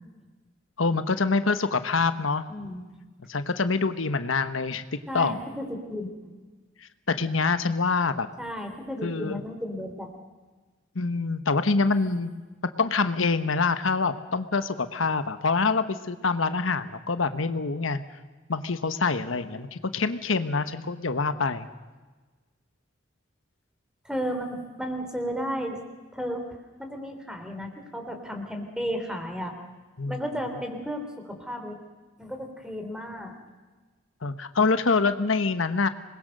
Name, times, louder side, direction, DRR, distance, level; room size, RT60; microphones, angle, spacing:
voice 1, 0.8-2.4 3.3-4.8 5.1-5.3 7.1-8.3 9.0-9.4 10.9-12.3 12.8-18.0 18.5-21.7 30.0-30.2 34.2-35.9, left 4 dB, 85° left, 10 dB, 1.1 m, -25 dB
voice 2, 2.5-2.8 5.1-6.1 8.4-10.1 11.8-12.2 24.0-25.8 26.1-26.4 26.8-29.5 30.1-31.8 32.2-33.3, equal, 5° right, 4 dB, 3.4 m, -33 dB
26.5 x 21.0 x 6.7 m, 1.3 s
head